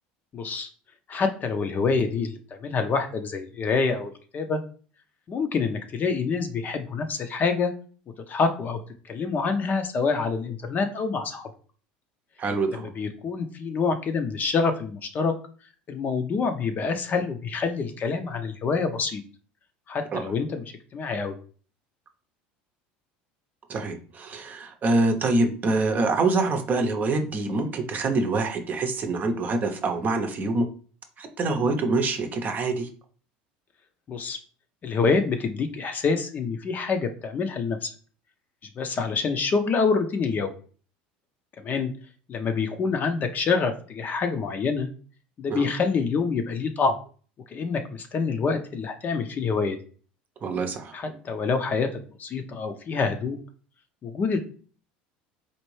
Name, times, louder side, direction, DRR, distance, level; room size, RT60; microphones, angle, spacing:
voice 1, 0.3-0.7 1.1-4.6 5.3-7.7 8.3-11.5 12.7-15.3 15.9-19.2 19.9-20.6 20.9-21.3 34.1-34.4 34.8-37.9 38.8-40.5 41.6-41.9 42.3-44.9 45.4-46.9 47.5-49.8 50.9-53.4 54.0-54.4, left 4 dB, 40° left, 7 dB, 0.6 m, -26 dB
voice 2, 12.4-12.9 20.1-20.2 23.7-30.7 31.2-32.9 45.5-45.6 50.4-51.2, right 3 dB, 35° right, 6 dB, 0.7 m, -25 dB
4.3 x 2.5 x 3.2 m, 0.41 s
supercardioid pair, 95°, 5 cm